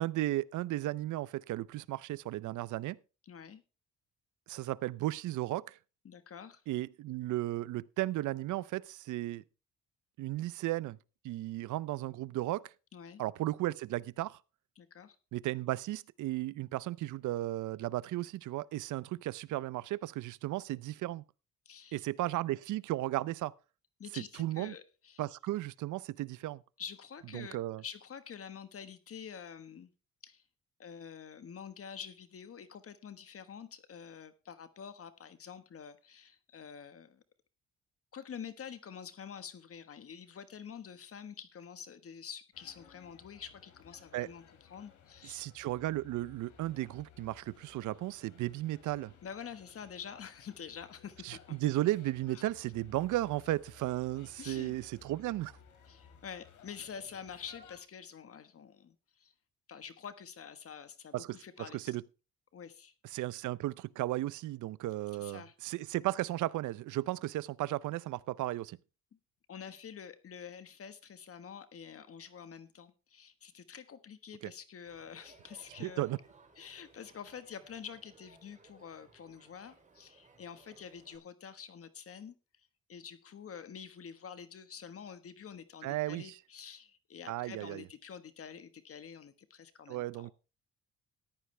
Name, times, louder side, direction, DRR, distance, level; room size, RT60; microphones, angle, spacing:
voice 1, 0.0-3.0 4.5-5.8 6.7-9.4 10.2-11.0 11.2-12.7 13.2-14.4 15.3-21.2 21.9-23.5 24.1-24.7 25.2-26.6 27.3-27.8 44.1-44.3 45.2-49.1 51.2-55.5 61.1-62.0 63.1-68.8 74.4-74.5 75.8-76.2 85.8-86.4 87.3-87.8 89.9-90.3, right 16 dB, 80° right, 0.6 m, -35 dB
voice 2, 3.3-3.6 6.0-6.6 12.9-13.2 14.8-15.2 21.6-22.0 24.0-25.2 26.8-29.9 30.2-30.4 30.8-37.2 38.1-45.4 49.2-51.6 54.4-54.8 55.9-59.3 59.7-62.0 62.5-63.2 65.2-65.5 69.1-69.2 69.5-76.1 76.6-90.3, left 7 dB, 50° left, 1.4 m, -47 dB
sound 1, 42.5-57.8, left 6 dB, 75° left, 3.0 m, -59 dB
Crowd, 74.9-81.2, right 3 dB, 25° right, 3.2 m, -61 dB
14.5 x 11.5 x 3.3 m
cardioid pair, 90°, 30 cm